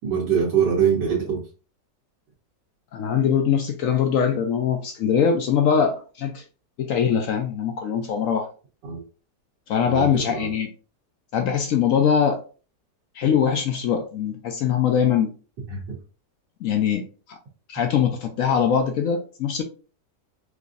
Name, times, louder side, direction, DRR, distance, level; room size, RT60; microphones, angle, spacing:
voice 1, 0.0-1.4 8.8-9.0 9.9-10.5 15.7-15.8, right 7 dB, 85° right, -4 dB, 1.6 m, -23 dB
voice 2, 2.9-6.4 6.8-8.5 9.7-10.7 11.3-12.4 13.1-15.3 16.6-17.4 17.7-19.6, left 7 dB, 75° left, 5 dB, 0.8 m, -22 dB
4.8 x 2.5 x 2.4 m, 0.36 s
omnidirectional pair, 1.9 m